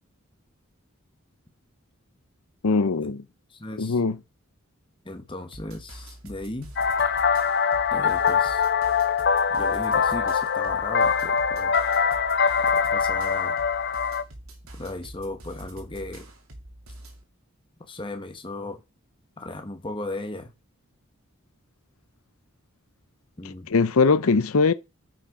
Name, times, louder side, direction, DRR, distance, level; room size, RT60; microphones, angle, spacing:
voice 1, 2.6-3.2 3.8-4.2 23.7-24.7, left 4 dB, 90° left, 0.6 m, -21 dB
voice 2, 3.5-4.0 5.0-6.7 7.9-8.6 9.5-11.7 12.6-13.6 14.8-16.3 17.9-18.8 19.4-20.5 23.4-23.7, left 2 dB, 25° left, 1.2 m, -36 dB
sound 1, 5.5-17.2, right 1 dB, 85° right, 2.5 m, -44 dB
sound 2, 6.8-14.2, left 6 dB, 50° left, 0.7 m, -23 dB
9.9 x 6.4 x 4.7 m
head